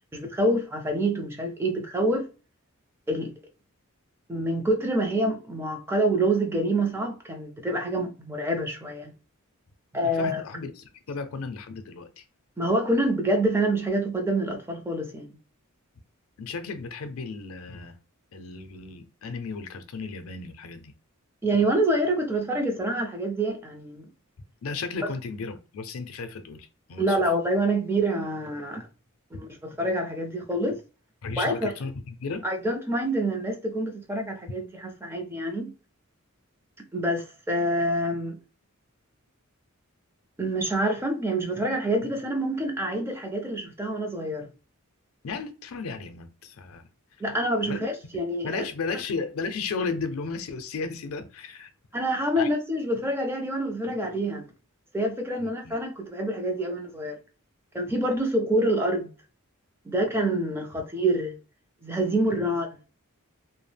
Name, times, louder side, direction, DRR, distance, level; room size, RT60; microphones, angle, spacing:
voice 1, 0.1-2.3 3.1-3.3 4.3-9.1 9.9-10.4 12.6-15.3 21.4-24.1 27.0-28.8 29.3-30.8 31.4-31.7 32.4-35.7 36.9-38.4 40.4-44.5 47.2-48.6 51.9-54.5 54.9-57.2 57.7-59.1 59.9-61.3 61.8-62.8, right 1 dB, 10° right, 0.4 m, -26 dB
voice 2, 10.0-12.2 16.4-17.9 18.3-20.9 24.6-27.2 31.2-32.4 45.2-46.9 47.6-47.9 48.4-51.7 52.4-52.5 55.4-55.7, left 4 dB, 70° left, 0.4 m, -34 dB
2.2 x 2.0 x 3.3 m
head